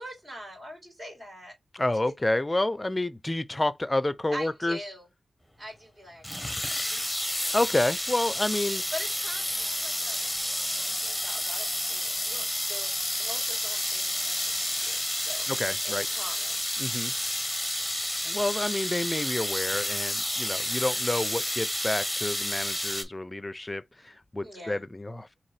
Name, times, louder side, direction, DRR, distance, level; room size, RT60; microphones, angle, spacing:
voice 1, 0.0-1.5 4.3-5.1 5.6-7.2 8.7-16.6 24.4-24.8, equal, 45° right, 3.3 m, -43 dB
voice 2, 1.7-4.8 7.5-8.8 15.5-16.1 16.8-17.1 18.2-25.5, left 2 dB, 20° left, 0.5 m, -29 dB
sound 1, 6.2-23.0, left 1 dB, 5° left, 1.1 m, -30 dB
3.8 x 3.1 x 3.3 m
cardioid pair, 60°, 0 cm